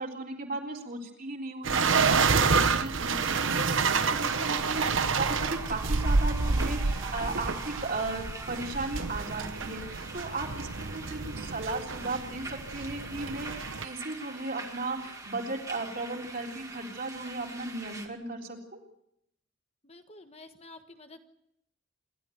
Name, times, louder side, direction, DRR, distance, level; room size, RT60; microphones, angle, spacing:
voice 1, 0.0-18.8, right 2 dB, 45° right, 1 dB, 3.7 m, -36 dB
sound 1, 1.6-13.8, right 4 dB, 75° right, 1.1 m, -28 dB
sound 2, 3.0-18.1, right 3 dB, 15° right, 2.2 m, -43 dB
voice 2, 19.8-21.2, left 2 dB, 30° left, 7 dB, 1.4 m, -50 dB
27.5 x 12.5 x 9.3 m, 0.78 s
head